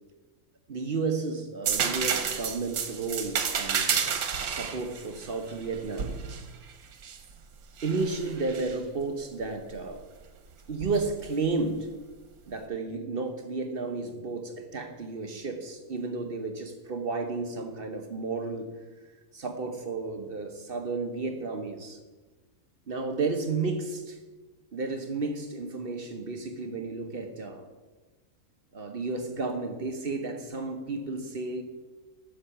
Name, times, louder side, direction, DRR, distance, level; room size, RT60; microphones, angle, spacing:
voice 1, 0.7-6.2 7.8-10.0 10.7-11.9 12.5-18.7 19.3-22.0 22.9-24.2 24.7-27.7 28.7-31.6, right 3 dB, 45° right, 5 dB, 0.9 m, -32 dB
sound 1, 1.6-7.2 7.8-8.7 10.8-11.0, right 7 dB, 85° right, 1.4 m, -30 dB
10.0 x 6.9 x 5.7 m, 1.3 s
omnidirectional pair, 1.5 m